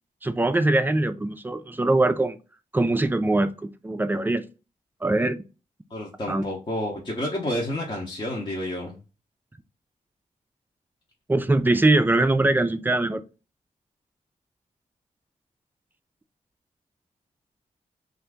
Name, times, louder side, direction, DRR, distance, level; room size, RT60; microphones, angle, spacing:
voice 1, 0.2-2.4 2.7-4.4 5.0-5.4 6.3-6.4 11.3-13.2, right 2 dB, 15° right, 0.3 m, -22 dB
voice 2, 5.9-8.9, left 1 dB, 35° left, 0.8 m, -30 dB
2.8 x 2.5 x 3.4 m
wide cardioid pair, 95°, 14 cm